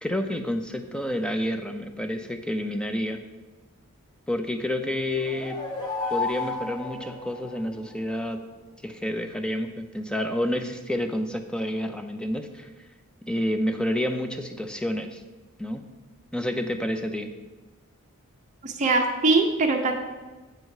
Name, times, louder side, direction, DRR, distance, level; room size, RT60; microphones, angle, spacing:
voice 1, 0.0-3.2 4.3-5.6 6.1-8.4 8.8-12.7 13.2-15.2 15.6-15.9 16.3-17.3, left 1 dB, 5° left, 7 dB, 0.4 m, -29 dB
sound 1, 5.0-7.9, left 3 dB, 20° left, 1.3 m, -33 dB
voice 2, 18.6-19.9, right 3 dB, 35° right, 3 dB, 0.6 m, -22 dB
7.9 x 5.4 x 4.8 m, 1.2 s
head